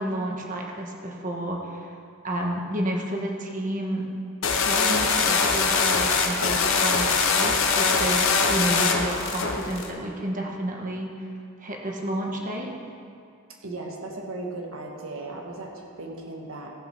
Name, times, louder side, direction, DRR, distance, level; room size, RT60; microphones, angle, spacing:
voice 1, 0.0-1.9 2.2-4.0 4.6-11.3 11.6-12.7, right 1 dB, 35° right, 0 dB, 1.4 m, -31 dB
sound 1, 4.4-9.9, left 4 dB, 60° left, 1.0 m, -22 dB
voice 2, 13.6-16.7, right 2 dB, 65° right, 0 dB, 1.4 m, -36 dB
15.0 x 5.8 x 6.0 m, 2.4 s
head